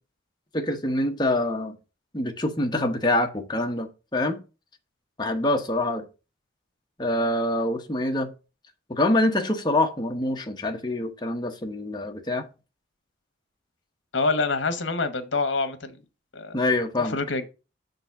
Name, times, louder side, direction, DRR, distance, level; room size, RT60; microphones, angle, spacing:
voice 1, 0.5-1.8 2.1-4.4 5.2-6.0 7.0-8.3 8.9-12.5 16.5-17.2, left 1 dB, 20° left, 0.9 m, -25 dB
voice 2, 14.1-16.0 16.3-16.6 17.0-17.5, left 3 dB, 75° left, 1.1 m, -26 dB
6.7 x 3.9 x 5.8 m
head